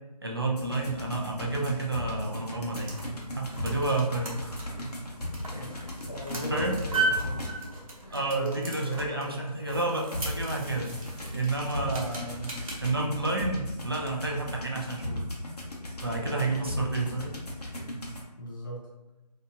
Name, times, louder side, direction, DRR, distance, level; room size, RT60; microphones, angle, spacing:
voice 1, 0.2-3.0 3.3-4.6 6.5-6.8 8.1-10.9 11.3-12.5 12.8-15.2 16.0-17.4 17.6-17.8, right 2 dB, 35° right, -1 dB, 0.4 m, -30 dB
sound 1, 0.5-7.8 10.1-18.2, left 1 dB, 65° left, 0.9 m, -37 dB
sound 2, 2.5-12.9, right 3 dB, 55° right, 0.9 m, -37 dB
voice 2, 4.5-4.8 5.4-7.4 8.0-9.4 11.9-12.1 16.2-16.6 18.4-18.8, equal, 30° left, -6 dB, 0.7 m, -40 dB
3.3 x 2.8 x 2.6 m, 1.0 s
figure-of-eight pair, 170°, 21 cm